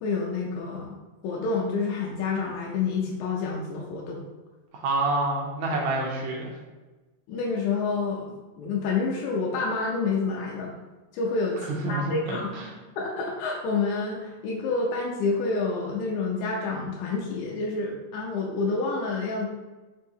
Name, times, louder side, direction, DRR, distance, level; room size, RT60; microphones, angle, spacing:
voice 1, 0.0-0.9 1.2-4.3 5.7-5.8 7.3-10.7 11.1-12.5 13.0-19.5, left 4 dB, 85° left, -2 dB, 2.0 m, -28 dB
voice 2, 4.7-6.5 11.8-12.7, right 2 dB, 80° right, -1 dB, 1.7 m, -28 dB
5.4 x 2.7 x 2.6 m, 1.2 s
omnidirectional pair, 3.4 m